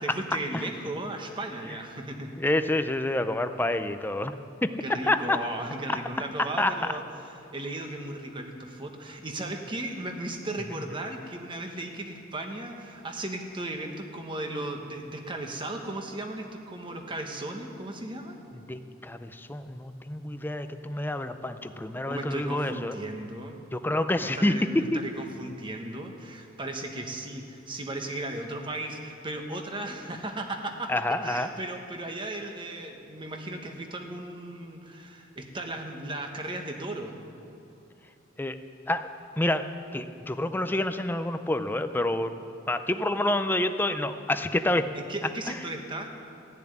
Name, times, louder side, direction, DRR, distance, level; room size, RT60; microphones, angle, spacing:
voice 1, 0.0-2.4 4.8-7.0 7.5-18.4 22.1-23.6 24.2-24.7 24.9-30.9 31.2-37.2 44.9-46.1, right 1 dB, 25° right, 3 dB, 1.2 m, -36 dB
voice 2, 2.4-4.4 4.6-4.8 5.1-5.4 5.9-6.9 18.7-23.0 23.7-25.0 30.9-31.5 38.4-38.6 38.9-39.1 39.4-44.8, left 1 dB, 10° left, 10 dB, 0.5 m, -28 dB
15.5 x 7.1 x 9.9 m, 2.7 s
head